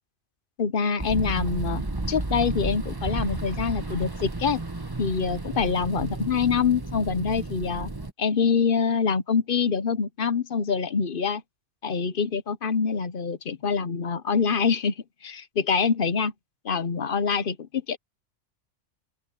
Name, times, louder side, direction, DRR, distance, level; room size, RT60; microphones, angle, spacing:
voice 1, 0.6-1.8 2.1-4.6 5.0-7.9 8.2-11.4 11.8-14.9 15.2-16.3 16.6-18.0, left 6 dB, 50° left, 1.0 m, -25 dB
sound 1, 1.0-8.1, right 2 dB, 20° right, 1.3 m, -32 dB
open air
omnidirectional pair, 1.3 m